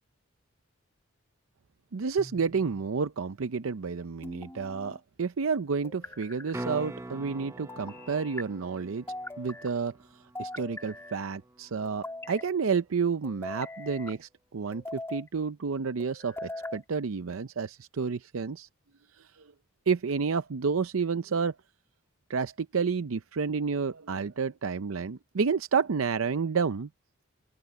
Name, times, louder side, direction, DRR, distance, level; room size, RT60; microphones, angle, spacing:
voice 1, 1.9-9.1 9.4-10.0 10.4-18.7 19.1-19.5 19.9-21.6 22.3-26.9, right 5 dB, 85° right, 0.6 m, -30 dB
sound 1, 2.2-2.9 4.2-5.0 5.8-6.6 7.7-8.5 9.1-9.7 10.3-11.2 11.8-12.5 13.2-14.2 14.7-15.3 16.0-16.8, left 2 dB, 10° left, 2.1 m, -41 dB
sound 2, 6.5-12.6 17.2-17.3, right 1 dB, 15° right, 0.7 m, -44 dB
open air
head